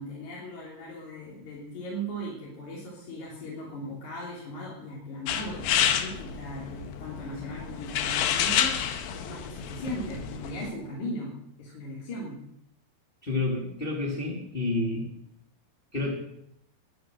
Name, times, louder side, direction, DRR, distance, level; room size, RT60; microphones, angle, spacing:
voice 1, 0.0-11.3 11.6-12.4, equal, 50° left, -5 dB, 4.3 m, -38 dB
sound 1, 5.3-10.7, left 9 dB, 90° left, 3.2 m, -29 dB
voice 2, 13.2-15.0 15.9-16.1, left 2 dB, 15° left, -1 dB, 1.9 m, -29 dB
22.0 x 7.8 x 6.3 m, 0.75 s
omnidirectional pair, 4.7 m